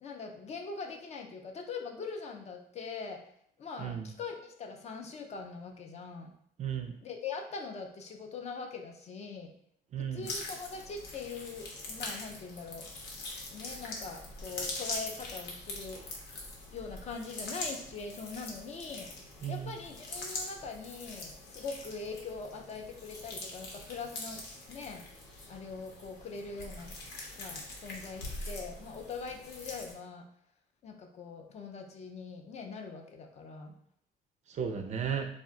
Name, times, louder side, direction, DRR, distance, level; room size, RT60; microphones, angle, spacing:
voice 1, 0.0-3.2 3.6-6.3 7.0-9.5 10.0-12.9 13.5-16.0 16.7-19.1 19.5-24.4 24.7-25.0 25.5-27.0 27.3-30.2 30.8-33.7, left 4 dB, 40° left, 4 dB, 0.4 m, -42 dB
voice 2, 6.6-7.0 9.9-10.3 19.4-19.8 34.5-35.3, right 8 dB, 45° right, 5 dB, 0.4 m, -34 dB
sound 1, 10.2-29.9, left 2 dB, 80° left, 0.8 m, -43 dB
2.4 x 2.1 x 3.7 m, 0.68 s
cardioid pair, 110°, 17 cm